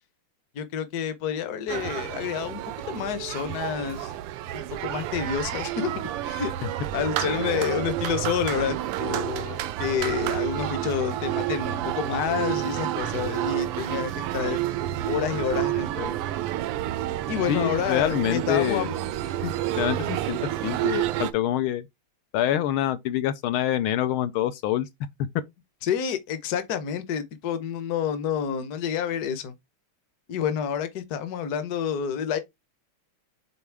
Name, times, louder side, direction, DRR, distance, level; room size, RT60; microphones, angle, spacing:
voice 1, 0.5-2.6 2.9-4.1 4.5-6.5 6.9-14.6 15.1-16.2 17.3-18.9 19.4-19.5 25.8-29.5 30.3-32.4, left 8 dB, 55° left, 1.2 m, -29 dB
sound 1, 1.7-21.3, right 13 dB, 90° right, 1.6 m, -29 dB
voice 2, 17.5-18.9 19.8-21.9 22.3-24.9, left 12 dB, 80° left, 1.4 m, -26 dB
7.1 x 4.1 x 3.4 m
omnidirectional pair, 2.4 m